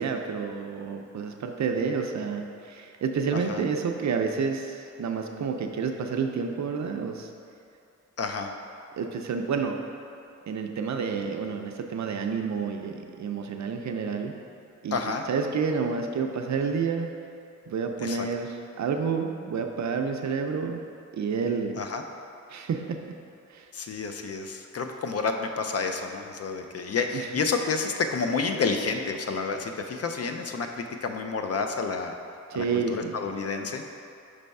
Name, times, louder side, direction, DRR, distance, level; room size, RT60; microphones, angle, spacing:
voice 1, 0.0-7.3 9.0-9.8 10.5-14.3 14.8-15.0 15.3-17.1 17.7-20.8 21.1-21.8 22.5-23.0 23.5-23.7 27.1-27.3 32.5-33.2, right 5 dB, 70° right, 4 dB, 0.5 m, -29 dB
voice 2, 8.2-8.5 14.9-15.2 18.0-18.3 21.8-22.0 23.7-32.1 32.5-33.8, left 4 dB, 55° left, 5 dB, 0.4 m, -30 dB
5.3 x 3.4 x 5.3 m, 2.5 s
wide cardioid pair, 150°, 30 cm